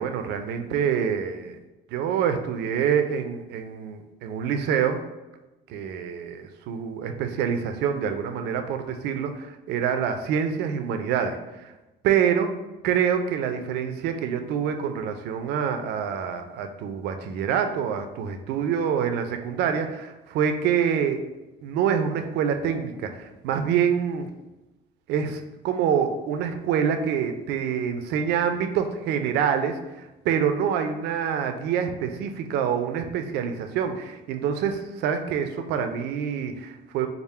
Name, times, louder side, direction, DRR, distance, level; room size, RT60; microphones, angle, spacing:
voice 1, 0.0-1.6 1.9-5.0 5.7-11.7 12.0-12.5 12.8-21.2 21.6-24.3 25.1-37.1, right 7 dB, 85° right, 6 dB, 0.4 m, -26 dB
3.5 x 2.0 x 4.2 m, 1.0 s
cardioid pair, 110°, 17 cm